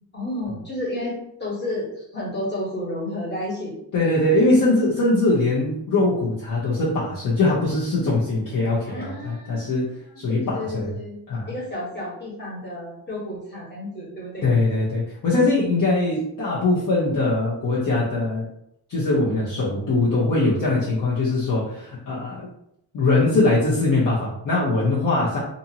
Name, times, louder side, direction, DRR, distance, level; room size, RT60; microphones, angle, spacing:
voice 1, 0.1-3.7 8.9-11.2 11.5-14.4, left 1 dB, 25° left, -6 dB, 1.2 m, -31 dB
voice 2, 3.9-9.9 10.2-10.9 11.3-11.5 14.4-18.4 18.9-22.5 22.9-25.4, left 2 dB, 45° left, -7 dB, 0.7 m, -21 dB
2.6 x 2.6 x 2.8 m, 0.75 s
wide cardioid pair, 165°, 45 cm